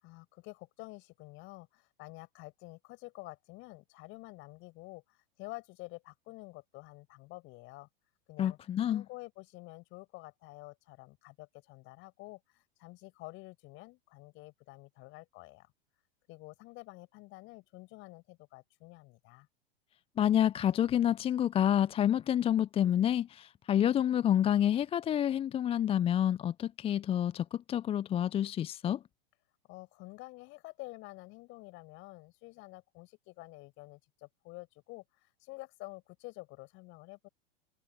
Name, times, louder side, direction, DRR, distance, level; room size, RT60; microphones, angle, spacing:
voice 1, 0.0-7.9 8.3-8.6 8.9-15.7 16.3-19.5 29.7-37.3, left 22 dB, 40° left, 5.6 m, -49 dB
voice 2, 8.4-9.0 20.2-29.0, left 10 dB, 20° left, 0.7 m, -28 dB
figure-of-eight pair, 95°, 30 cm